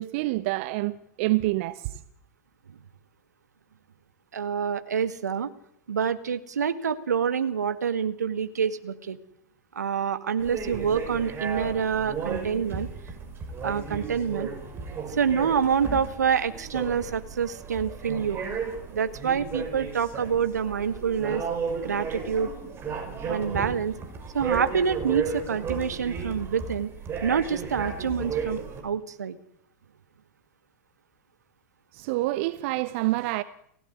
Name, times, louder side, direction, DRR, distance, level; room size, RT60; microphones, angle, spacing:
voice 1, 0.0-2.0 31.9-33.4, right 19 dB, 45° right, 1.1 m, -27 dB
voice 2, 4.3-5.5 5.9-9.2 9.8-12.9 13.6-14.5 15.1-18.4 18.9-21.4 21.8-22.5 23.3-23.9 24.3-26.9 27.2-29.4, right 7 dB, 70° right, 1.8 m, -27 dB
sound 1, 10.4-28.8, right 5 dB, 25° right, 6.3 m, -34 dB
30.0 x 16.5 x 9.7 m
figure-of-eight pair, 95°, 9 cm